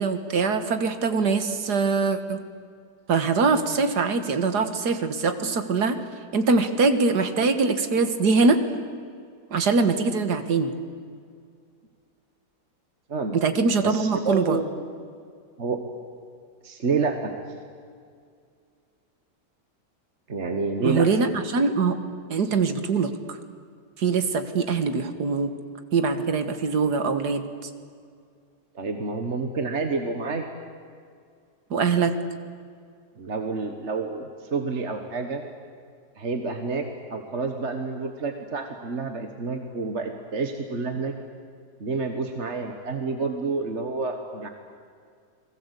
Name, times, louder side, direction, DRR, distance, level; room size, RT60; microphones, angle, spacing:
voice 1, 0.0-2.4 3.1-6.0 6.3-8.6 9.5-10.7 13.3-14.6 20.8-22.0 22.3-23.4 24.0-25.5 25.9-27.7 31.7-32.1, right 4 dB, 70° right, 9 dB, 2.1 m, -23 dB
voice 2, 13.8-14.7 15.6-15.8 16.6-17.3 20.3-21.1 28.8-30.5 33.2-35.4 36.2-36.8 37.1-41.1 41.8-44.5, right 4 dB, 45° right, 5 dB, 1.7 m, -29 dB
29.5 x 21.5 x 8.3 m, 2.2 s
omnidirectional pair, 1.8 m